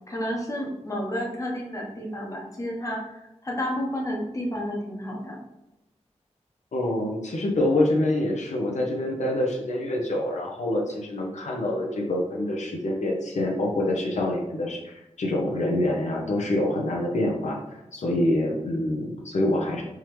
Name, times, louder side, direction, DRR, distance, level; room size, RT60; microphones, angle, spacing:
voice 1, 0.1-5.4, equal, 25° left, -1 dB, 0.9 m, -31 dB
voice 2, 6.7-19.8, left 1 dB, 75° left, -1 dB, 0.7 m, -26 dB
3.6 x 3.1 x 3.0 m, 0.91 s
wide cardioid pair, 105°, 12 cm